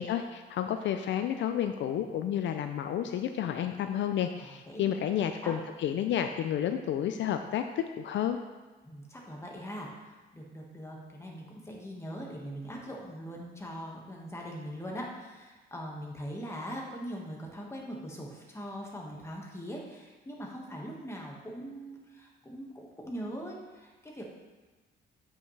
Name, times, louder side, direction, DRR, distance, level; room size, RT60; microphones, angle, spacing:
voice 1, 0.0-8.4, left 10 dB, 70° left, 8 dB, 0.4 m, -31 dB
voice 2, 4.4-5.0 5.4-5.5 8.8-24.3, equal, 15° left, -2 dB, 1.7 m, -41 dB
8.5 x 5.5 x 3.3 m, 1.3 s
cardioid pair, 90°, 20 cm